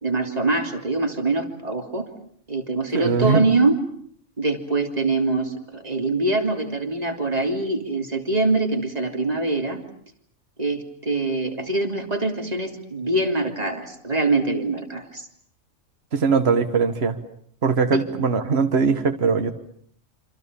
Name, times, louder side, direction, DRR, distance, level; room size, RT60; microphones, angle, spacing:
voice 1, 0.0-2.1 2.5-3.8 4.4-9.8 10.6-15.3 17.9-18.0, right 2 dB, 30° right, 4 dB, 3.2 m, -24 dB
voice 2, 2.9-3.5 16.1-17.2 17.6-19.5, right 5 dB, 55° right, 7 dB, 1.8 m, -21 dB
27.5 x 27.0 x 7.0 m, 0.63 s
omnidirectional pair, 1.3 m